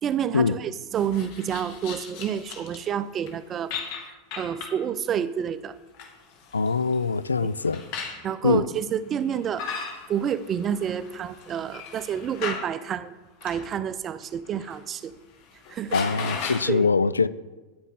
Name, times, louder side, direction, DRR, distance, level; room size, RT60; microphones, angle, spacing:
voice 1, 0.0-3.7 4.4-5.8 7.4-7.5 8.2-13.1 13.4-15.1 15.7-16.0 16.6-16.9, right 8 dB, 35° right, 0.6 m, -29 dB
sound 1, 1.0-2.9 3.3-3.4 3.7-4.8 5.7-8.2 9.2-12.7 13.4-13.7 14.2-14.8 15.1-15.2 15.5-16.7, left 6 dB, 55° left, 2.1 m, -37 dB
voice 2, 6.5-7.8 8.4-8.6 15.9-17.3, left 4 dB, 90° left, 0.3 m, -23 dB
10.5 x 9.1 x 3.8 m
hypercardioid pair, 90°, 0 cm